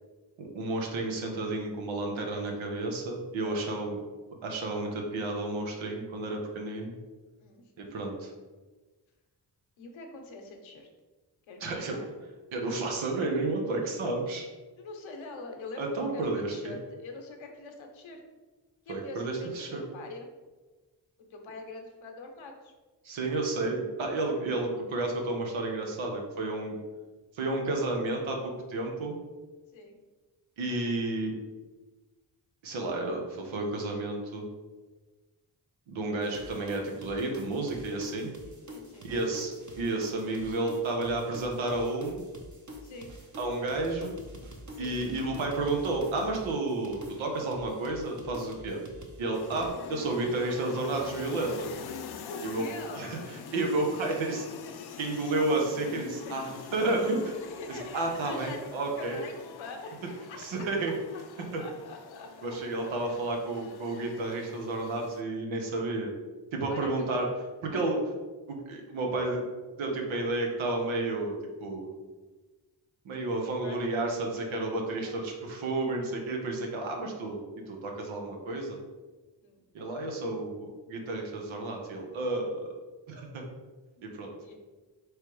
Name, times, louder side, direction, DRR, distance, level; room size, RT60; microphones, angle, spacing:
voice 1, 0.4-4.0 4.4-7.0 7.8-8.3 11.6-12.0 12.5-14.5 15.8-16.8 18.9-19.8 23.0-26.8 27.3-29.2 30.6-31.3 32.6-34.5 35.9-38.3 39.0-42.2 43.4-44.2 44.8-48.8 49.2-51.7 52.4-52.6 53.0-54.4 55.0-57.3 57.7-59.2 60.4-60.9 61.5-61.6 62.4-66.1 66.5-67.3 67.6-68.0 68.5-69.4 69.8-71.3 71.6-71.9 73.0-78.8 79.7-82.7 83.1-83.4 84.0-84.3, right 2 dB, 85° right, 1 dB, 0.9 m, -31 dB
voice 2, 9.8-10.9 11.5-12.1 14.8-18.2 18.9-20.3 21.3-22.7 29.7-30.0 38.4-39.1 42.8-43.1 44.7-45.0 52.3-53.2 56.3-56.4 57.5-58.7 59.0-59.9 60.3-60.7 61.5-62.9 66.7-66.9 67.7-67.8 73.6-73.9 75.0-75.2 79.4-79.7 84.4-84.5, left 3 dB, 80° left, 3 dB, 0.9 m, -44 dB
sound 1, 36.2-49.7, equal, 40° right, 1.0 m, -47 dB
sound 2, 49.3-65.2, left 6 dB, 55° left, 0.5 m, -45 dB
3.3 x 3.1 x 4.6 m, 1.3 s
cardioid pair, 50°, 46 cm